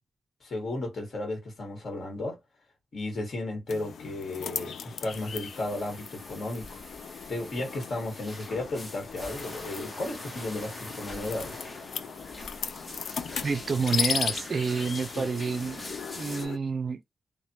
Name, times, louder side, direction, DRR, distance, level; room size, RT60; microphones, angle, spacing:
voice 1, 0.4-2.4 2.9-6.8 7.3-11.6 15.1-15.3, left 2 dB, 50° left, 1.4 m, -34 dB
sound 1, 3.7-16.6, left 7 dB, 80° left, 0.3 m, -37 dB
sound 2, 5.1-16.5, left 2 dB, 25° left, 0.7 m, -44 dB
voice 2, 13.4-15.9 16.2-17.0, right 5 dB, 45° right, 0.4 m, -29 dB
3.2 x 2.1 x 2.7 m
wide cardioid pair, 155°, 0 cm